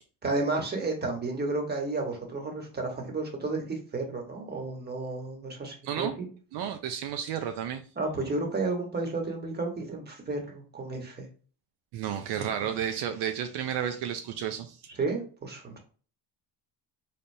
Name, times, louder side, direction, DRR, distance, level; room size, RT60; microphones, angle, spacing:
voice 1, 0.2-6.3 8.0-11.3 12.4-12.7 15.0-15.8, right 3 dB, 25° right, 2 dB, 1.2 m, -32 dB
voice 2, 6.5-7.8 11.9-14.8, right 9 dB, 70° right, 7 dB, 0.6 m, -32 dB
4.0 x 3.4 x 2.7 m, 0.40 s
cardioid pair, 120°, 43 cm